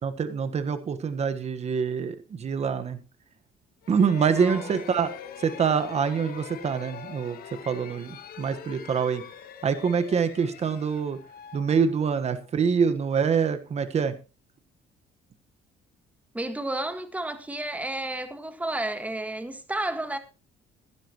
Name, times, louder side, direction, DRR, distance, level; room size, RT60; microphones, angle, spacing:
voice 1, 0.0-3.0 3.9-5.1 5.4-7.4 7.7-9.2 9.6-11.2 11.5-14.1, right 6 dB, 40° right, 1.4 m, -25 dB
sound 1, 3.8-12.5, left 9 dB, 60° left, 1.5 m, -43 dB
voice 2, 4.3-4.7 16.3-20.2, right 1 dB, 10° right, 1.7 m, -32 dB
16.0 x 11.5 x 3.0 m
cardioid pair, 110°, 17 cm